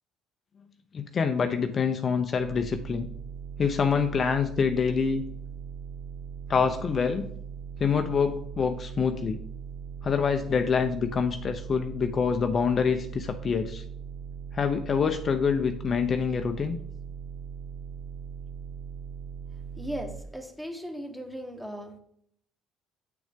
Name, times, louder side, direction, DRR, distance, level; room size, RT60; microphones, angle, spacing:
voice 1, 0.9-3.1 3.6-5.2 6.5-7.3 7.8-9.4 10.0-13.8 14.5-16.8, left 6 dB, 40° left, 6 dB, 0.5 m, -26 dB
sound 1, 2.3-20.2, right 7 dB, 80° right, 0.8 m, -40 dB
voice 2, 19.8-22.0, equal, 5° right, 4 dB, 1.3 m, -37 dB
7.7 x 6.3 x 3.6 m, 0.67 s
cardioid pair, 105°, 0 cm